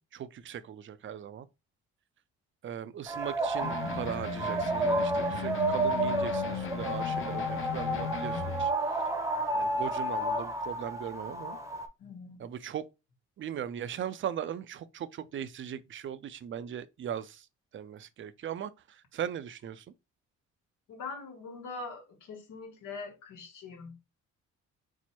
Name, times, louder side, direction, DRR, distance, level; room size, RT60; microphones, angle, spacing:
voice 1, 0.0-1.5 2.6-9.1 9.5-11.6 12.4-12.9 13.4-17.5 17.7-19.9, right 9 dB, 40° right, 0.4 m, -39 dB
sound 1, 3.1-11.9, right 1 dB, 10° right, 0.8 m, -31 dB
sound 2, 3.6-8.7, left 7 dB, 45° left, 0.6 m, -37 dB
voice 2, 12.0-12.4 20.9-23.9, left 4 dB, 80° left, 1.2 m, -42 dB
4.4 x 2.1 x 4.3 m
cardioid pair, 90°, 30 cm